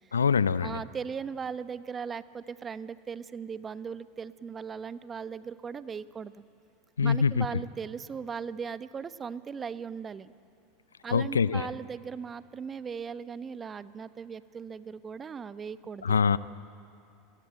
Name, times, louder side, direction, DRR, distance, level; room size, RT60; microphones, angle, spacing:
voice 1, 0.1-0.8 7.0-7.5 11.1-11.7 16.0-16.4, left 6 dB, 85° left, 18 dB, 0.6 m, -24 dB
voice 2, 0.6-6.4 7.0-10.3 11.0-16.4, right 6 dB, 25° right, 14 dB, 1.0 m, -38 dB
29.0 x 21.0 x 9.0 m, 2.6 s
hypercardioid pair, 85°, 0 cm